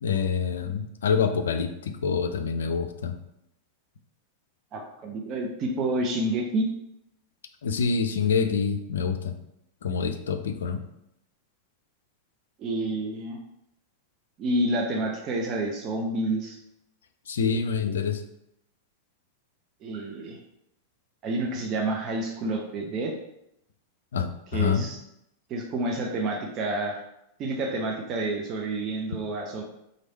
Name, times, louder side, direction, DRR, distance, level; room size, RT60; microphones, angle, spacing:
voice 1, 0.0-3.2 7.6-9.3 9.8-10.8 17.3-18.2 24.1-24.8, left 6 dB, 65° left, 8 dB, 0.3 m, -26 dB
voice 2, 4.7-6.7 12.6-13.4 14.4-16.6 19.8-20.4 21.2-23.1 24.5-25.0 25.5-27.0 27.4-29.6, right 2 dB, 35° right, 1 dB, 0.5 m, -29 dB
3.1 x 2.6 x 4.0 m, 0.80 s
figure-of-eight pair, 90°, 0 cm